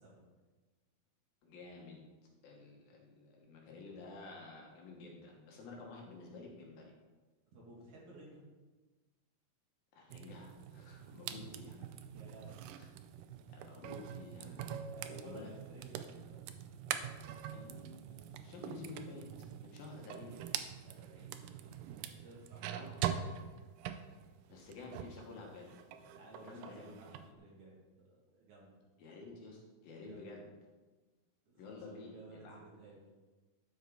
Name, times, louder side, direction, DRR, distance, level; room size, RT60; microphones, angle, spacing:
voice 1, 1.4-2.0 2.4-6.9 9.9-11.9 12.8-12.9 13.5-15.5 17.5-19.3 19.6-20.5 22.7-23.0 24.5-25.7 26.4-27.0 29.0-30.5 31.6-32.6, left 3 dB, 75° left, -1 dB, 3.1 m, -51 dB
voice 2, 7.5-8.4 12.1-12.6 14.9-16.4 20.8-21.5 22.1-23.1 26.1-27.8 28.1-28.8 30.0-30.3 31.5-33.0, right 2 dB, 60° right, -5 dB, 3.3 m, -56 dB
sound 1, 10.1-25.2 25.6-27.3, right 9 dB, 80° right, 2.0 m, -44 dB
10.5 x 6.4 x 3.9 m, 1.3 s
omnidirectional pair, 4.3 m